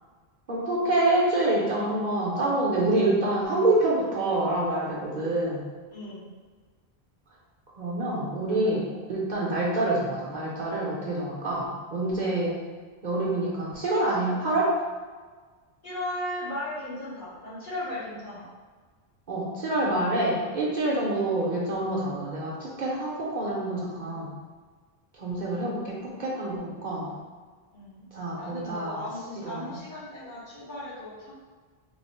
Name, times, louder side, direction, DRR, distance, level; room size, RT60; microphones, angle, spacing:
voice 1, 0.5-5.6 7.8-12.5 13.0-14.7 19.3-24.3 25.2-27.1 28.1-29.0 29.3-29.7, right 2 dB, 50° right, -5 dB, 0.7 m, -27 dB
voice 2, 5.9-6.3 15.8-18.4 27.7-28.0 28.4-31.3, left 1 dB, 50° left, -8 dB, 1.1 m, -36 dB
3.0 x 2.0 x 4.1 m, 1.4 s
omnidirectional pair, 1.1 m